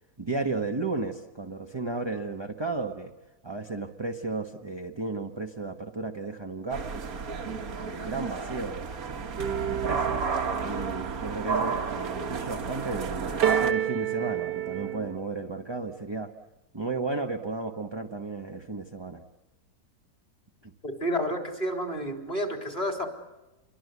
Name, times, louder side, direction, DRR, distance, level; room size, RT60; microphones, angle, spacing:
voice 1, 0.2-3.1 3.4-8.9 9.3-10.2 10.6-16.3 16.7-19.2 20.6-20.7, right 3 dB, 20° right, 3 dB, 1.0 m, -34 dB
sound 1, 6.7-13.7, right 5 dB, 60° right, 1.7 m, -32 dB
sound 2, 9.4-15.2, right 10 dB, 85° right, 1.8 m, -31 dB
voice 2, 20.8-23.1, equal, 25° left, 3 dB, 3.8 m, -30 dB
28.0 x 23.0 x 8.3 m, 1.0 s
omnidirectional pair, 1.8 m